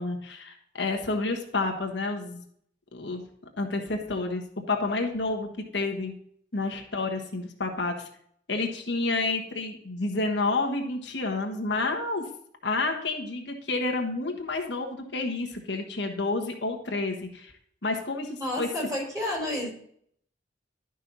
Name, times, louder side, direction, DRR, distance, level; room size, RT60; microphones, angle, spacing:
voice 1, 0.0-2.4 2.9-3.2 3.6-4.4 4.7-6.1 6.5-8.1 8.5-12.2 12.6-17.5 17.8-18.7, left 3 dB, 70° left, 2 dB, 1.3 m, -29 dB
voice 2, 18.3-19.7, left 1 dB, 20° right, -3 dB, 4.1 m, -30 dB
12.0 x 5.4 x 4.0 m, 0.66 s
head